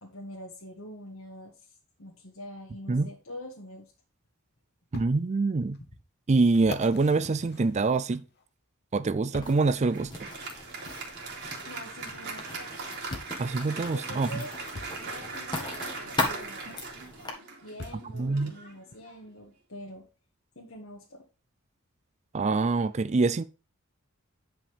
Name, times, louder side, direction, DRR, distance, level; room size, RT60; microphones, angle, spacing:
voice 1, 0.0-3.9 11.6-12.7 13.9-14.5 15.1-16.8 17.6-20.0 20.5-21.2, left 1 dB, 65° left, 1.6 m, -45 dB
sound 1, 3.8-3.9 4.9-5.1 5.7-5.8 6.5-8.4 9.3-9.7 10.8-11.0 12.3-12.4 13.1-13.4 14.7-15.0 16.6-16.7 17.8-18.1 18.9-19.0, left 3 dB, 50° left, 1.0 m, -42 dB
voice 2, 4.9-5.8 6.3-8.2 8.9-10.1 13.4-14.3 18.2-18.5 22.3-23.4, right 3 dB, 30° right, 0.4 m, -25 dB
Writing, 9.4-17.3, left 2 dB, 20° left, 1.7 m, -38 dB
Applause, 9.6-19.4, right 4 dB, 50° right, 2.6 m, -40 dB
9.6 x 5.8 x 3.4 m
head